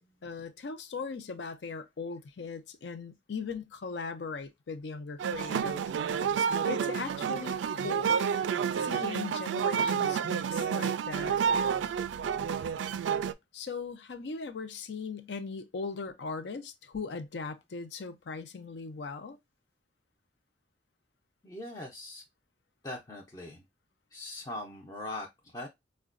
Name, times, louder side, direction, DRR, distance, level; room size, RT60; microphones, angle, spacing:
voice 1, 0.2-5.8 6.7-8.2 8.8-11.4 13.5-19.4, left 4 dB, 70° left, 0.5 m, -39 dB
sound 1, 5.2-13.3, right 7 dB, 85° right, 0.3 m, -29 dB
voice 2, 21.4-22.2 22.8-23.6 24.1-25.7, left 1 dB, 20° left, 0.5 m, -41 dB
4.7 x 2.2 x 2.4 m
head